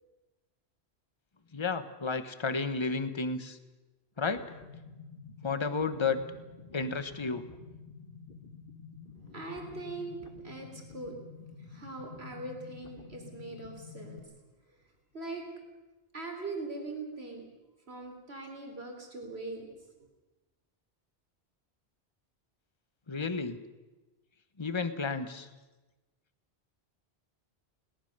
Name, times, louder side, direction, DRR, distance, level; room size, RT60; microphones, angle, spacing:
voice 1, 1.5-3.6 4.2-4.4 5.4-6.2 6.7-7.4 23.1-23.6 24.6-25.5, left 4 dB, 25° left, 11 dB, 1.2 m, -32 dB
sound 1, 4.2-14.2, left 5 dB, 55° left, 1.7 m, -49 dB
voice 2, 9.1-11.2 11.7-14.2 15.1-15.5 16.1-17.5 17.9-19.7, right 3 dB, 70° right, 2 dB, 4.1 m, -41 dB
21.5 x 18.5 x 6.7 m, 1.1 s
omnidirectional pair, 1.1 m